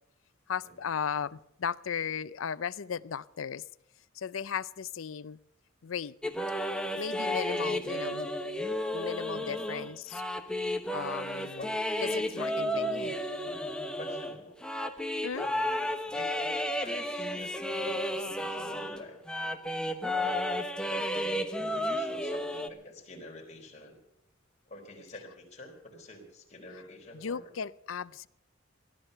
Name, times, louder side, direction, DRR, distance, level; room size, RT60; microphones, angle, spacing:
voice 1, 0.5-3.6 4.1-5.4 5.8-6.1 6.9-8.3 8.9-10.2 10.9-11.7 12.0-13.2 15.2-15.5 27.1-28.3, left 7 dB, 85° left, 18 dB, 0.5 m, -36 dB
sound 1, 6.2-19.0 19.3-22.7, left 1 dB, 5° left, 1.1 m, -32 dB
voice 2, 9.3-9.7 11.5-11.8 12.0-12.3 12.8-13.0 13.4-14.6 15.3-19.6 20.2-20.4 20.8-24.0 24.7-27.5, left 2 dB, 35° left, 0 dB, 4.2 m, -48 dB
17.0 x 12.5 x 6.7 m, 0.78 s
head